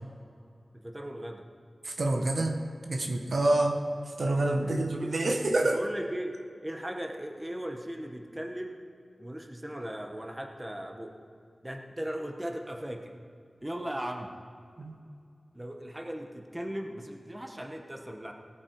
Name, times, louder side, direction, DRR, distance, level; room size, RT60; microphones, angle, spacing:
voice 1, 0.7-1.4 4.6-4.7 5.0-5.1 5.6-6.4 6.6-8.8 9.2-11.1 11.6-13.1 13.6-14.3 15.5-18.3, equal, 15° right, 3 dB, 1.1 m, -37 dB
voice 2, 1.8-3.8 4.1-5.8 14.8-15.0, right 2 dB, 70° right, 3 dB, 1.1 m, -27 dB
17.5 x 8.5 x 4.6 m, 2.4 s
wide cardioid pair, 80°, 0 cm